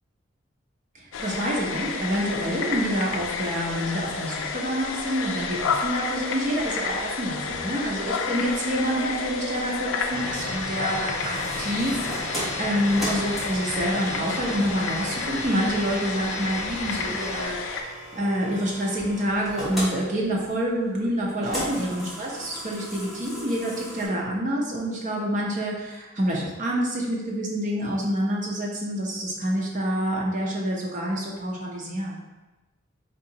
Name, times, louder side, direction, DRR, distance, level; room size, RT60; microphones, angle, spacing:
voice 1, 0.9-32.2, equal, 40° right, -3 dB, 0.7 m, -27 dB
sound 1, 1.1-17.8, left 5 dB, 70° left, 0.3 m, -31 dB
sound 2, 10.1-17.5, equal, 20° right, 1.2 m, -36 dB
sound 3, 11.2-24.1, equal, ahead, 1.1 m, -37 dB
3.9 x 2.8 x 2.8 m, 1.1 s
head